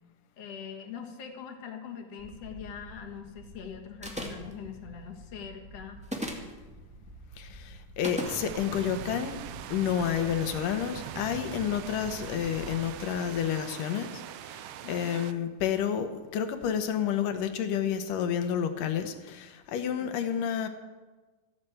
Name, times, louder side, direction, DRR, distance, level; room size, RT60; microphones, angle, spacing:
voice 1, 0.4-6.0 14.8-15.3 20.0-20.5, left 7 dB, 55° left, 3 dB, 2.3 m, -43 dB
Wind, 2.2-13.5, right 1 dB, 20° right, 0.9 m, -49 dB
sound 1, 4.0-4.5 6.0-6.5 8.0-8.3, equal, 5° right, 1.1 m, -35 dB
voice 2, 7.4-9.4 9.7-20.7, left 9 dB, 80° left, 8 dB, 2.7 m, -30 dB
sound 2, 8.2-15.3, right 11 dB, 80° right, 1.7 m, -42 dB
14.5 x 9.9 x 7.9 m, 1.2 s
omnidirectional pair, 3.7 m